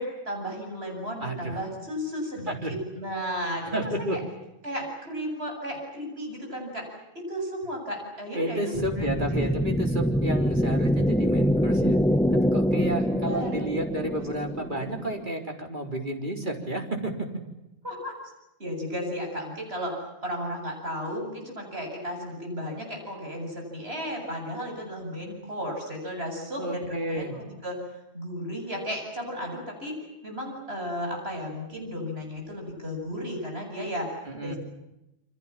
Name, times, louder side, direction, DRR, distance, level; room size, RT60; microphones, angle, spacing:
voice 1, 0.0-4.2 4.6-9.6 11.0-11.2 13.0-13.5 17.8-18.2 18.6-27.8 28.1-30.0 30.2-34.1 34.4-34.6, equal, 70° right, 2 dB, 8.2 m, -34 dB
voice 2, 1.2-1.6 2.5-2.7 3.7-4.2 8.3-12.0 12.3-17.3 26.6-27.4 34.3-34.6, right 1 dB, 50° right, 3 dB, 4.1 m, -31 dB
sound 1, 8.7-15.2, equal, 5° left, 0.8 m, -25 dB
28.5 x 25.0 x 7.4 m, 0.90 s
omnidirectional pair, 1.1 m